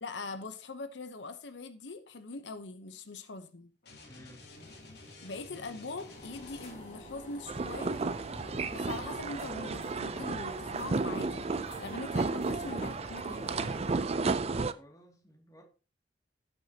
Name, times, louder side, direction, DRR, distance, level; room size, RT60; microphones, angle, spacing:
voice 1, 0.0-3.7 5.2-8.0 8.7-13.9, left 3 dB, 90° left, 0.9 m, -42 dB
sound 1, 3.8-7.1, left 3 dB, 65° left, 2.8 m, -52 dB
voice 2, 4.0-4.5 14.7-15.6, equal, 20° left, 2.4 m, -55 dB
sound 2, 4.4-14.1, left 1 dB, 40° left, 4.7 m, -49 dB
sound 3, 7.5-14.7, right 3 dB, 35° right, 0.5 m, -33 dB
16.0 x 6.3 x 2.9 m
head